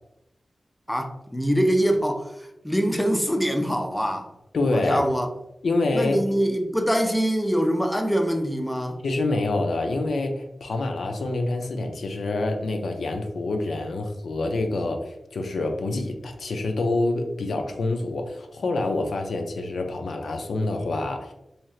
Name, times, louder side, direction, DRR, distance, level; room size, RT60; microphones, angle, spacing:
voice 1, 0.9-4.3 4.7-5.3 5.9-9.0, equal, 5° left, 0.3 m, -24 dB
voice 2, 4.5-5.0 5.6-6.3 9.0-21.3, left 2 dB, 90° left, 0.4 m, -26 dB
3.1 x 2.8 x 2.3 m
wide cardioid pair, 125°, 0 cm